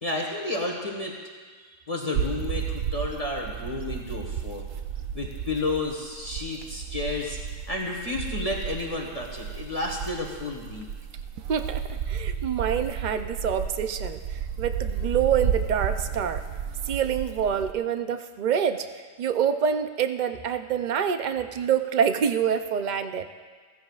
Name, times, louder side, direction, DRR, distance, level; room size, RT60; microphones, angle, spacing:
voice 1, 0.0-1.2 1.9-4.7 5.1-7.4 7.7-10.9, left 2 dB, 30° left, -1 dB, 1.4 m, -31 dB
sound 1, 2.1-17.7, right 7 dB, 80° right, 1.0 m, -33 dB
voice 2, 11.5-16.4 16.9-23.3, right 8 dB, 55° right, 8 dB, 0.5 m, -26 dB
16.0 x 15.0 x 2.4 m, 1.5 s
omnidirectional pair, 1.4 m